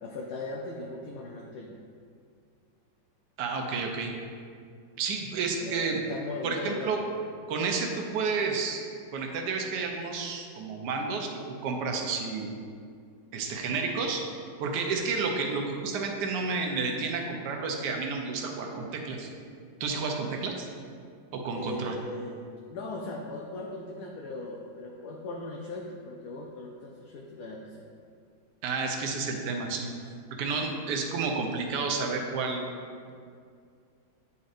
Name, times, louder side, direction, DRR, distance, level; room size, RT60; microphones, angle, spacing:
voice 1, 0.0-1.8 5.6-7.0 21.5-27.8, left 2 dB, 70° left, -1 dB, 1.0 m, -39 dB
voice 2, 3.4-4.1 5.0-6.0 6.4-7.0 7.5-8.8 9.1-11.3 11.6-12.5 13.3-14.2 14.6-19.3 19.8-20.7 21.3-22.0 28.6-29.9 30.4-32.7, right 4 dB, 70° right, 2 dB, 1.2 m, -30 dB
9.4 x 4.1 x 2.5 m, 2.3 s
omnidirectional pair, 2.0 m